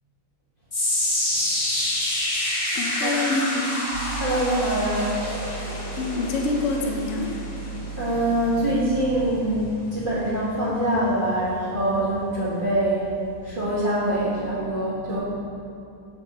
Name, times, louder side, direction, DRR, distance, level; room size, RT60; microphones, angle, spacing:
sound 1, 0.7-13.0 13.3-13.7 14.3-14.4, left 1 dB, 45° left, 0.4 m, -29 dB
voice 1, 2.7-3.9 6.0-7.4, left 3 dB, 85° left, 2 dB, 0.6 m, -26 dB
sound 2, 3.9-9.3, right 6 dB, 75° right, 1.5 m, -36 dB
voice 2, 4.2-5.5 8.0-13.1 13.4-15.2, right 1 dB, 30° right, -11 dB, 1.4 m, -24 dB
7.3 x 6.5 x 2.8 m, 2.7 s
omnidirectional pair, 2.2 m